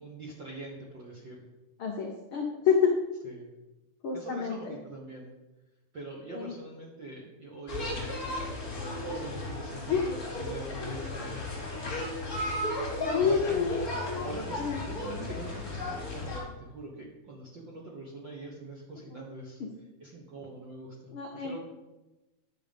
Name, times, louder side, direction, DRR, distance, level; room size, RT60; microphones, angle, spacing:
voice 1, 0.0-1.4 3.2-3.5 4.1-5.3 5.9-11.5 13.1-13.8 14.2-19.6 20.0-21.6, right 2 dB, 55° right, -2 dB, 1.3 m, -44 dB
voice 2, 1.8-2.9 4.0-4.6 6.3-6.5 9.9-10.0 13.0-13.7 14.6-14.8 19.1-19.2 21.1-21.6, left 6 dB, 75° left, 0 dB, 1.2 m, -28 dB
sound 1, 7.7-16.4, left 1 dB, 30° left, 2.4 m, -35 dB
10.5 x 6.6 x 5.2 m, 1.1 s
omnidirectional pair, 3.9 m